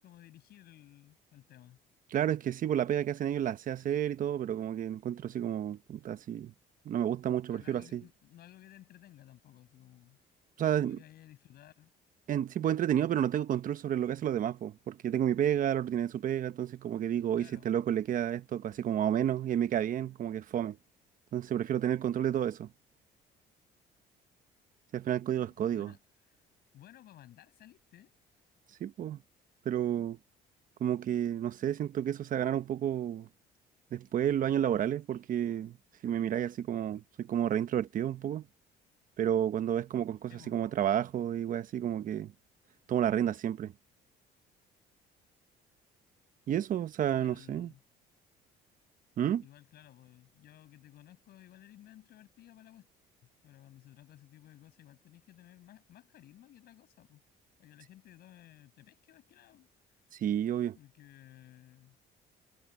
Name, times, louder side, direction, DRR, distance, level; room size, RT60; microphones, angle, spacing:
voice 1, 0.0-1.8 7.5-10.2 10.6-11.9 17.3-17.7 25.4-26.0 26.3-26.4 26.7-28.1 40.3-40.6 47.1-47.8 49.4-52.9 53.2-57.2 57.6-59.7 60.7-62.0, left 13 dB, 70° left, 7.0 m, -56 dB
voice 2, 2.1-6.5 6.8-8.0 10.6-11.0 12.3-20.8 21.3-22.7 24.9-25.9 28.8-29.2 29.6-30.2 30.8-33.3 33.9-35.8 36.0-38.5 39.2-42.3 42.9-43.7 46.5-47.7 49.2-49.4 60.1-60.8, right 10 dB, 55° right, 1.1 m, -31 dB
cardioid pair, 110°, 17 cm